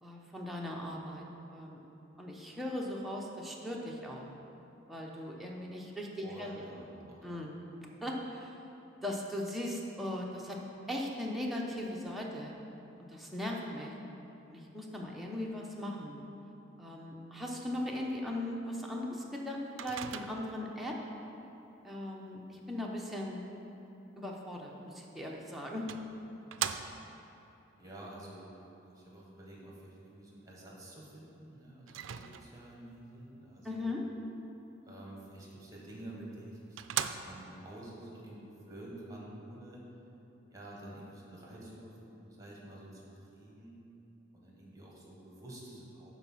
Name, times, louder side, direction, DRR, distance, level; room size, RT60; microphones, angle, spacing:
voice 1, 0.0-1.2 1.5-1.8 2.2-4.3 4.9-6.5 7.2-7.5 8.0-8.6 9.0-10.6 10.9-12.5 13.1-13.9 14.5-16.2 16.8-21.0 21.8-23.4 24.2-25.9 33.6-34.0, left 1 dB, ahead, -3 dB, 0.8 m, -38 dB
voice 2, 6.2-7.3 27.8-28.5 28.8-33.9 34.8-36.8 37.1-39.8 40.5-43.8 44.3-46.1, right 1 dB, 20° right, -4 dB, 1.5 m, -49 dB
Microwave oven, 19.8-20.7 25.0-25.1 25.9-27.3 31.9-32.8 35.9-36.0 36.4-36.5 36.8-37.6, right 9 dB, 75° right, 0.4 m, -39 dB
9.6 x 4.1 x 6.2 m, 3.0 s
head